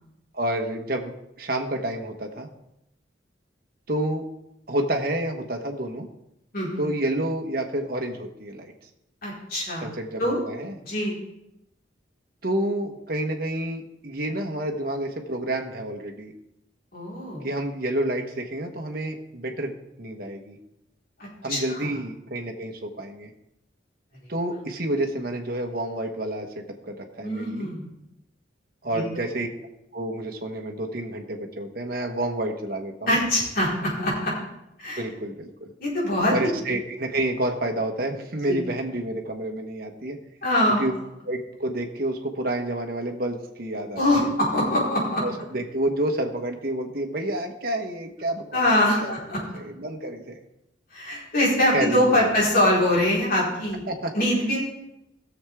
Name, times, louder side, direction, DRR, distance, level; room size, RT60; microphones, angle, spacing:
voice 1, 0.3-2.5 3.9-4.3 4.7-6.1 6.8-8.7 9.8-10.8 12.4-16.3 17.4-20.6 21.4-23.3 24.3-27.7 28.8-29.5 29.9-33.2 35.0-35.7 36.3-40.2 40.8-40.9 41.2-44.3 45.2-49.1 49.5-50.4 51.7-52.3 53.9-54.1, right 1 dB, 55° right, 3 dB, 1.2 m, -29 dB
voice 2, 9.2-9.9 10.2-10.4 10.8-11.2 16.9-17.5 21.2-21.9 27.2-27.9 28.9-29.2 33.1-34.3 34.8-35.0 35.8-36.6 38.5-38.6 40.4-40.9 44.0-45.2 48.5-49.4 50.9-53.8 54.1-54.6, left 1 dB, 50° left, -5 dB, 4.4 m, -23 dB
16.5 x 7.2 x 3.6 m, 0.84 s
head